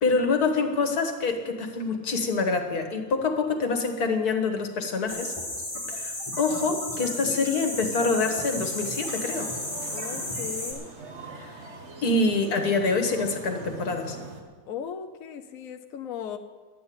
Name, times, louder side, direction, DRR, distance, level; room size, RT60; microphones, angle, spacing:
voice 1, 0.0-5.3 5.9-9.5 11.4-11.5 12.0-14.2, left 3 dB, 90° left, 5 dB, 2.0 m, -26 dB
sound 1, 5.1-10.7, left 1 dB, 20° left, 3.2 m, -33 dB
sound 2, 8.2-14.4, right 3 dB, 50° right, 1.7 m, -42 dB
voice 2, 9.9-10.9 14.7-16.4, left 8 dB, 70° left, 6 dB, 1.1 m, -37 dB
12.0 x 8.5 x 9.4 m, 1.5 s
omnidirectional pair, 1.6 m